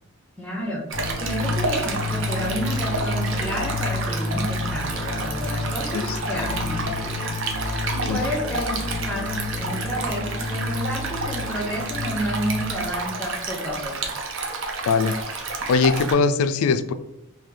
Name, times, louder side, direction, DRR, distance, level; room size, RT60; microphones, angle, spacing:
voice 1, 0.4-6.0 6.3-7.2 7.5-13.9, equal, 5° left, -1 dB, 0.7 m, -30 dB
sound 1, 0.9-12.9, left 2 dB, 40° left, 0.6 m, -30 dB
Stream, 0.9-16.1, right 3 dB, 60° right, 0.6 m, -30 dB
voice 2, 14.9-15.4 15.7-16.9, left 5 dB, 75° left, 12 dB, 0.3 m, -21 dB
3.2 x 2.7 x 3.7 m, 0.87 s
head